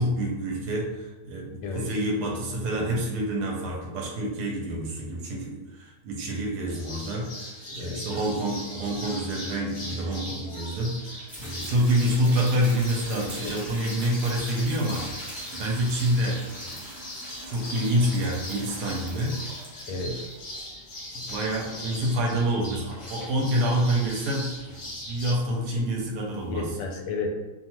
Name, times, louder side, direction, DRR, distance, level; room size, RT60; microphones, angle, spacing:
voice 1, 0.0-17.0 17.5-19.6 19.9-20.2 21.1-26.7, right 1 dB, 75° right, -1 dB, 1.1 m, -27 dB
voice 2, 2.5-3.0 7.8-8.2 13.3-13.5 19.9-20.1 25.6-25.9 26.5-27.4, left 2 dB, 85° left, 2 dB, 1.2 m, -33 dB
sound 1, 6.7-25.3, left 1 dB, 60° left, 0.9 m, -40 dB
sound 2, 11.3-26.6, equal, ahead, 0.4 m, -44 dB
2.7 x 2.3 x 2.9 m, 1.1 s
omnidirectional pair, 1.9 m